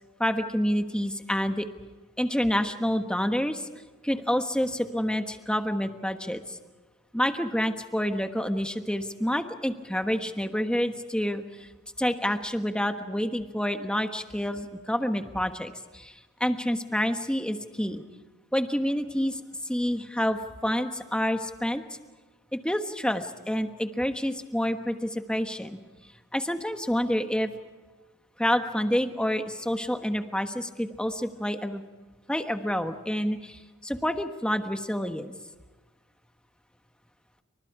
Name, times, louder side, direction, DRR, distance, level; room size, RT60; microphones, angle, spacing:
voice 1, 0.2-1.7 2.2-3.6 4.0-6.6 7.1-11.7 12.0-16.1 16.4-18.0 18.5-19.4 19.6-21.8 22.5-25.8 26.3-27.5 28.4-31.8 32.3-35.3, equal, 5° left, 7 dB, 1.3 m, -28 dB
28.5 x 25.0 x 4.9 m, 1.3 s
head